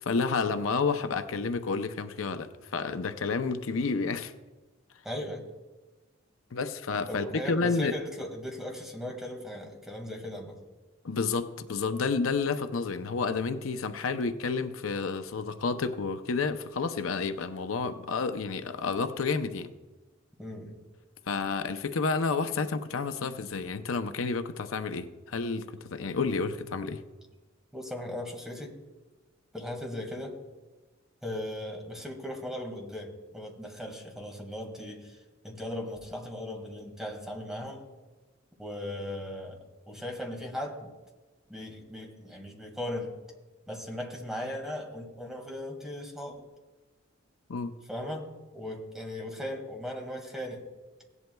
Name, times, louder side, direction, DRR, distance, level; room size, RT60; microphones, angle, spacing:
voice 1, 0.0-4.3 6.5-8.0 11.0-19.7 21.3-27.0 47.5-47.7, left 4 dB, 85° left, 9 dB, 0.6 m, -30 dB
voice 2, 5.0-5.4 7.1-10.6 20.4-20.8 27.7-28.8 29.5-30.4 31.2-37.8 38.6-40.9 41.5-43.1 43.7-46.5 47.9-50.6, left 1 dB, ahead, 1 dB, 1.9 m, -38 dB
16.5 x 11.0 x 2.3 m, 1.2 s
head